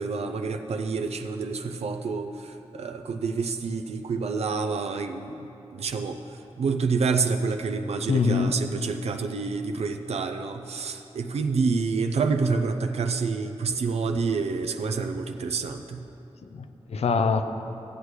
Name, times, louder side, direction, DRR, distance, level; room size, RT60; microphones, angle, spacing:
voice 1, 0.0-5.5 5.7-6.2 6.6-16.0, right 4 dB, 85° right, 6 dB, 0.4 m, -28 dB
voice 2, 8.1-8.6 16.5-17.4, left 5 dB, 85° left, 8 dB, 0.5 m, -24 dB
15.0 x 8.1 x 3.1 m, 2.9 s
wide cardioid pair, 115°, 10 cm